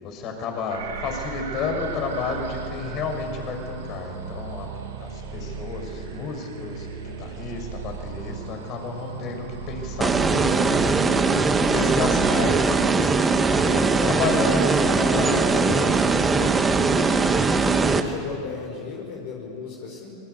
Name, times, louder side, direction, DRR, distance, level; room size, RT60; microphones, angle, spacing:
voice 1, 0.0-4.7 5.0-6.9 7.2-11.2 11.7-12.6 13.5-16.5, left 4 dB, 45° left, 4 dB, 6.2 m, -31 dB
sound 1, 0.7-12.5, right 5 dB, 80° right, 8.0 m, -36 dB
sound 2, 10.0-18.0, right 4 dB, 20° right, 2.0 m, -20 dB
voice 2, 17.4-20.1, left 5 dB, 65° left, 0 dB, 5.2 m, -36 dB
28.0 x 22.0 x 8.3 m, 2.4 s
hypercardioid pair, 95°, 0 cm